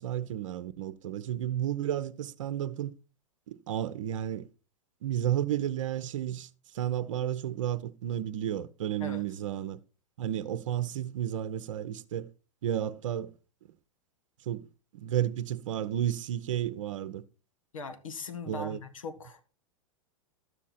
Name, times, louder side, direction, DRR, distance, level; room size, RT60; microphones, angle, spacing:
voice 1, 0.0-2.9 3.5-4.5 5.0-9.8 10.2-12.3 12.6-13.3 14.5-14.7 14.9-17.2 18.5-18.8, right 11 dB, 70° right, 0.8 m, -32 dB
voice 2, 17.7-19.4, left 4 dB, 85° left, 1.6 m, -40 dB
12.5 x 7.3 x 4.2 m
hypercardioid pair, 105°, 17 cm